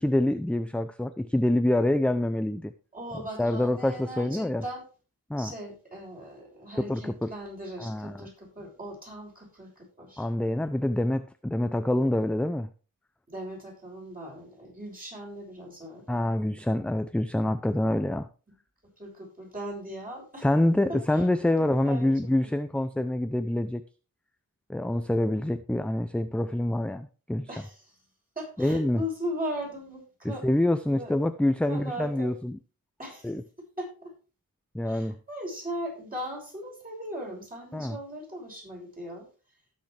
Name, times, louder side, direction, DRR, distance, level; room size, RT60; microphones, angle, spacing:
voice 1, 0.0-2.7 3.4-4.6 5.3-5.5 6.8-7.3 7.8-8.2 10.2-12.7 16.1-18.3 20.4-23.8 24.7-27.5 28.6-29.0 30.2-32.6 33.2-33.4 34.7-35.2 37.7-38.0, left 1 dB, 5° left, 10 dB, 0.5 m, -26 dB
voice 2, 2.9-4.8 5.4-10.3 13.3-16.3 18.8-20.5 21.1-22.5 27.5-28.0 28.3-30.5 30.9-31.1 31.7-32.3 33.0-33.3 33.8-34.1 34.8-39.2, equal, 25° right, -2 dB, 6.7 m, -39 dB
17.5 x 6.5 x 3.4 m, 0.34 s
wide cardioid pair, 115°, 33 cm